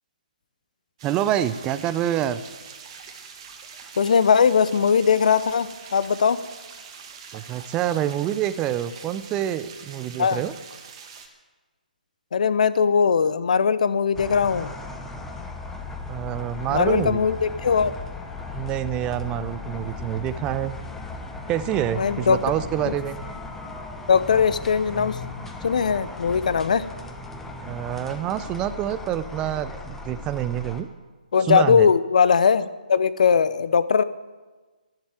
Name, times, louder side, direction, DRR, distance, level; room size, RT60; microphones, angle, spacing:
voice 1, 1.0-2.4 7.3-10.5 16.1-17.2 18.5-20.7 21.5-23.2 27.6-30.9 31.4-31.9, right 11 dB, 15° right, 14 dB, 0.6 m, -27 dB
sound 1, 1.0-11.3, right 6 dB, 35° right, 1.9 m, -44 dB
voice 2, 4.0-6.4 10.2-10.4 12.3-14.7 16.7-17.9 22.0-22.4 22.9-23.0 24.1-25.2 25.6-26.8 31.3-34.0, left 6 dB, 55° left, 15 dB, 0.8 m, -20 dB
sound 2, 14.1-30.8, left 3 dB, 5° left, 1.0 m, -37 dB
11.5 x 10.5 x 9.3 m, 1.3 s
figure-of-eight pair, 140°, 5 cm